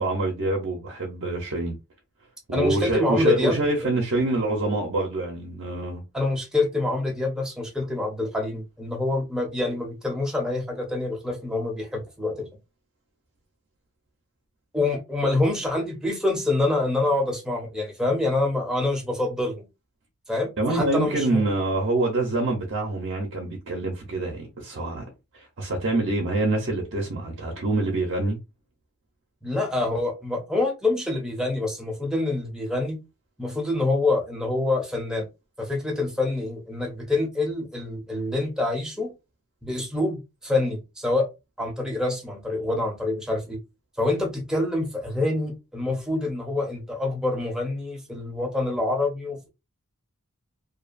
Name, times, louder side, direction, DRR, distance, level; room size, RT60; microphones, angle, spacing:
voice 1, 0.0-1.8 2.5-6.0 20.6-25.1 25.3-28.4, right 2 dB, 55° right, 0.6 m, -26 dB
voice 2, 2.5-3.9 6.1-12.5 14.7-19.7 20.3-21.4 29.4-33.0 33.4-35.3 35.6-39.1 39.6-41.3 41.6-43.6 44.0-49.5, left 2 dB, 5° right, 0.6 m, -26 dB
2.6 x 2.3 x 2.4 m
head